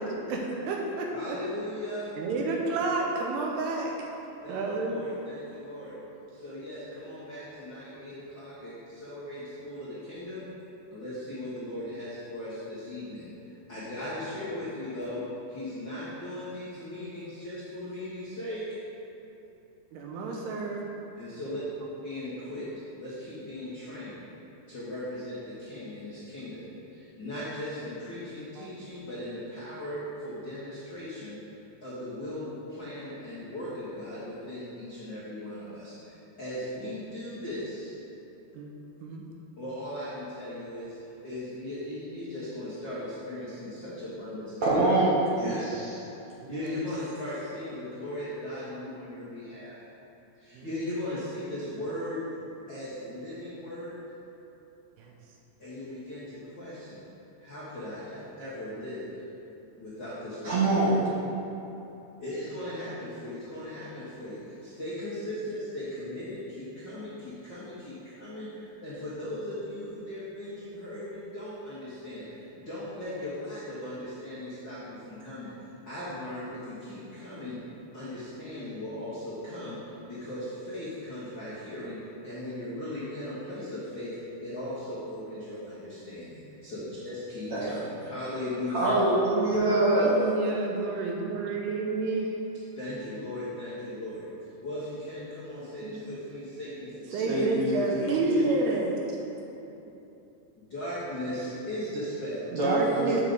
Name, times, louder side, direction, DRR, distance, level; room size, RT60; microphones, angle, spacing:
voice 1, 0.0-1.4 2.2-3.9 4.5-5.0 19.9-20.9 28.6-28.7 38.5-38.7 39.0-39.2 46.4-46.8 50.5-50.7 55.0-55.1 89.6-92.3 95.8-96.0 97.1-99.0 102.6-103.2, right 3 dB, 80° right, 0 dB, 2.7 m, -30 dB
voice 2, 1.1-2.1 4.4-5.9 6.3-10.5 10.9-13.3 13.7-15.2 15.5-18.8 21.1-21.6 22.0-22.6 23.0-24.2 24.7-31.4 31.8-37.9 39.6-44.9 46.5-49.7 50.4-52.2 52.7-54.0 55.6-57.1 57.4-59.1 59.8-61.0 62.2-75.5 75.9-77.6 77.9-84.1 84.4-88.9 92.7-97.5 100.6-102.5, left 1 dB, 75° left, -11 dB, 1.0 m, -38 dB
voice 3, 44.6-46.0 60.4-61.0 87.5-87.7 88.7-90.2 97.3-98.4 102.6-103.2, right 2 dB, 60° right, -9 dB, 1.9 m, -25 dB
8.8 x 6.6 x 3.9 m, 2.9 s
omnidirectional pair, 4.9 m